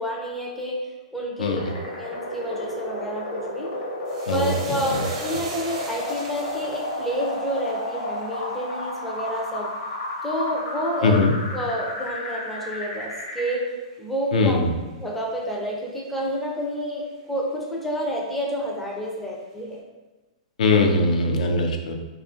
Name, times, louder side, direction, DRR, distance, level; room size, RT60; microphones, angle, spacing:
voice 1, 0.0-1.6 2.0-3.7 4.3-9.7 10.2-11.2 11.5-13.6 14.0-14.6 15.0-19.8, equal, 5° left, -3 dB, 0.4 m, -29 dB
voice 2, 1.4-1.8 4.3-5.0 11.0-11.3 14.3-14.7 20.6-22.0, left 2 dB, 80° left, 3 dB, 0.4 m, -21 dB
sound 1, 1.6-13.6, left 1 dB, 65° left, 0.8 m, -32 dB
sound 2, 4.1-12.7 13.0-13.6 13.9-14.1, right 3 dB, 50° right, 0.6 m, -42 dB
2.8 x 2.3 x 2.4 m, 1.2 s
hypercardioid pair, 150°, 4 cm